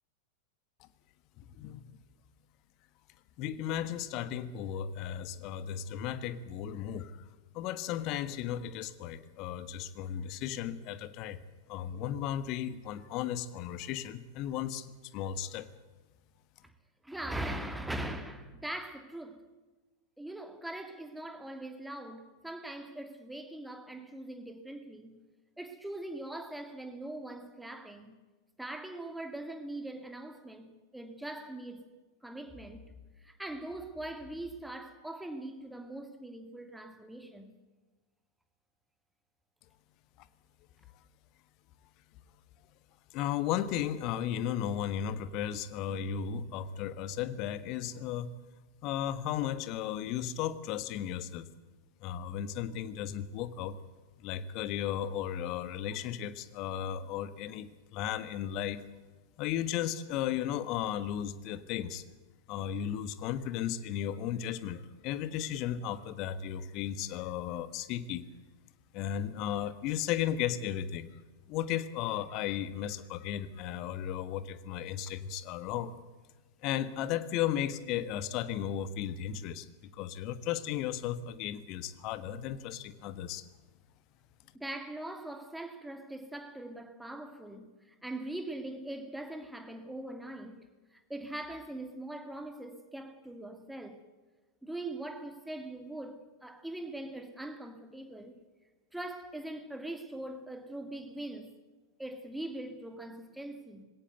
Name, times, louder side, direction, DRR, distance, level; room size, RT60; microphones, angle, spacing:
voice 1, 1.4-1.8 3.4-7.2 7.5-11.4 11.7-15.7 43.1-48.3 48.8-51.5 52.0-53.7 54.2-58.8 59.4-62.0 62.5-68.2 68.9-71.1 71.5-76.0 76.6-79.7 79.9-83.5, left 10 dB, 40° left, 1.4 m, -35 dB
voice 2, 17.0-19.5 20.2-25.2 25.6-28.2 28.6-31.9 32.2-32.9 33.2-37.5 84.5-94.0 94.6-98.4 98.9-101.5 102.0-103.8, right 1 dB, 5° right, 2.4 m, -41 dB
20.5 x 17.5 x 8.1 m
figure-of-eight pair, 90°, 0 cm